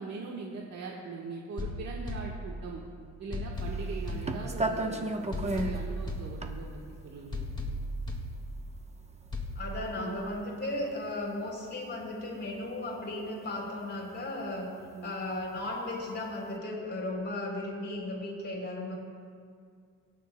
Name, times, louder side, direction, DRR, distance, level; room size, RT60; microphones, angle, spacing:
voice 1, 0.0-2.8 3.2-7.5 9.9-10.2 14.9-15.1, right 4 dB, 60° right, -2 dB, 1.4 m, -41 dB
sound 1, 1.6-2.9 3.3-4.9 5.3-6.9 7.3-8.9 9.3-9.6, left 1 dB, 15° left, 1.8 m, -36 dB
sound 2, 3.6-11.7 12.0-15.7 16.1-16.5, right 2 dB, 20° right, 0.9 m, -36 dB
voice 2, 9.5-14.7 15.0-19.0, left 1 dB, 35° left, -1 dB, 3.3 m, -36 dB
25.5 x 9.1 x 2.2 m, 2.2 s
cardioid pair, 90°, 30 cm